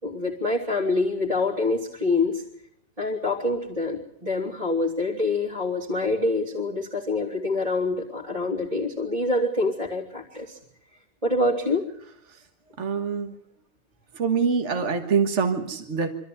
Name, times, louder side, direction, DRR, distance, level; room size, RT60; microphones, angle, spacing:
voice 1, 0.0-2.4 3.0-10.6 11.2-11.8, left 2 dB, 30° right, -4 dB, 3.1 m, -26 dB
voice 2, 12.8-13.4 14.1-16.1, right 5 dB, 60° right, 6 dB, 1.9 m, -25 dB
25.0 x 13.5 x 9.4 m, 0.74 s
omnidirectional pair, 1.4 m